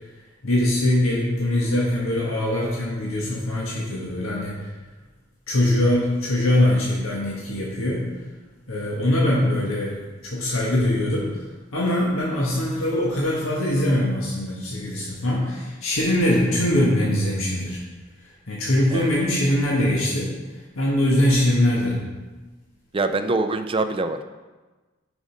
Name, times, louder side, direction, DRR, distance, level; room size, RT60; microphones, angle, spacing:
voice 1, 0.4-4.7 5.5-8.0 8.7-11.4 11.7-17.8 18.5-20.3 20.8-22.0, left 1 dB, 90° left, -5 dB, 1.6 m, -22 dB
voice 2, 22.9-24.2, right 3 dB, 25° right, 8 dB, 0.5 m, -24 dB
10.0 x 5.3 x 5.2 m, 1.2 s
head